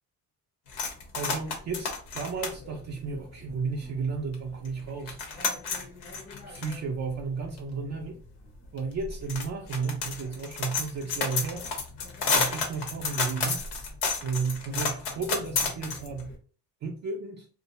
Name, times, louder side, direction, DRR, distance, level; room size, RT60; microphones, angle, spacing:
sound 1, 0.7-3.9 4.3-4.4 4.7-16.3, left 4 dB, 90° left, 0.8 m, -32 dB
voice 1, 1.1-5.2 6.5-8.2 8.7-11.7 12.2-13.6 14.2-16.3 16.8-17.5, right 4 dB, 45° right, 0.5 m, -33 dB
2.6 x 2.1 x 2.8 m
supercardioid pair, 70°, 40 cm